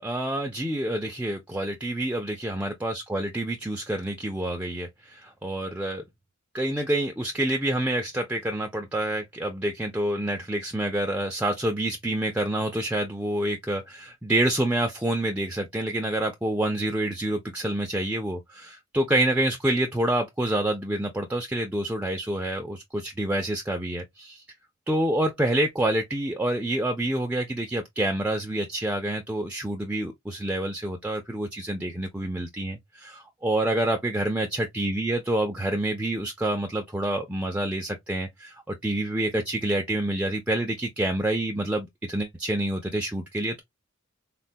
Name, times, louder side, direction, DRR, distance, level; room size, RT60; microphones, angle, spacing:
voice 1, 0.0-6.0 6.5-24.4 24.9-43.6, right 1 dB, 5° right, 0.3 m, -27 dB
3.6 x 2.2 x 2.5 m
head